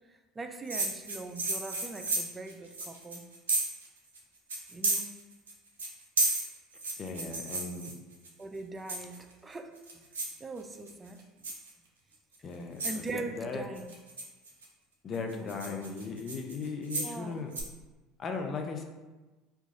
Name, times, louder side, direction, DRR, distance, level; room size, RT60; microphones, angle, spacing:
voice 1, 0.1-3.2 4.7-5.2 8.4-10.1 10.4-11.2 12.8-13.9 15.3-15.9 16.9-17.4, right 3 dB, 20° right, 6 dB, 0.4 m, -42 dB
sound 1, 0.7-3.9 4.1-4.2 4.5-5.5 5.8-8.3 8.9-9.3 9.8-10.4 10.7-11.1 11.4-11.7 12.3-12.4 12.8-13.1 13.8-14.6 15.1-17.2 17.5-17.6, right 2 dB, 85° right, 0.6 m, -32 dB
voice 2, 7.0-7.9 12.4-13.6 15.0-17.5 18.2-18.8, left 4 dB, 40° left, 3 dB, 0.5 m, -37 dB
3.0 x 2.3 x 3.8 m, 1.2 s
hypercardioid pair, 75°, 0 cm